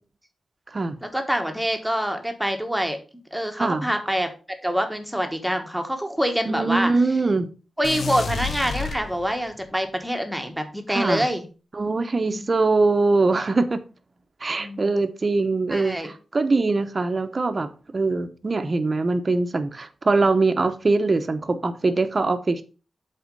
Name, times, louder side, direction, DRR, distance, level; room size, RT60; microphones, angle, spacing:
voice 1, 1.0-3.0 3.3-4.3 4.6-6.9 7.8-11.5 12.2-12.4 14.6-15.0 15.7-16.1, equal, 5° right, 5 dB, 1.2 m, -26 dB
voice 2, 3.6-3.9 6.5-7.5 10.9-11.2 11.7-13.8 14.4-22.6, right 3 dB, 35° right, 9 dB, 0.8 m, -22 dB
sound 1, 7.8-9.6, left 4 dB, 70° left, 1.2 m, -30 dB
7.9 x 4.3 x 5.3 m, 0.35 s
wide cardioid pair, 125°, 0 cm